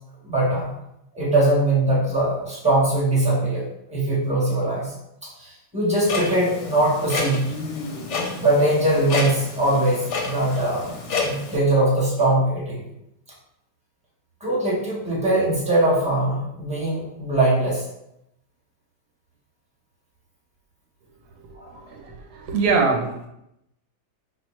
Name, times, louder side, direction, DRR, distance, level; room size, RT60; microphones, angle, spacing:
voice 1, 0.2-0.7 1.1-3.6 3.9-4.9 5.4-7.5 8.4-10.9 11.2-12.8 14.4-17.8 21.5-21.7, right 1 dB, 5° right, -6 dB, 0.9 m, -21 dB
Clock, 6.0-11.6, left 3 dB, 65° left, 0.8 m, -29 dB
voice 2, 21.5-23.3, right 4 dB, 90° right, 1 dB, 1.3 m, -24 dB
4.5 x 2.0 x 3.1 m, 0.82 s
omnidirectional pair, 1.6 m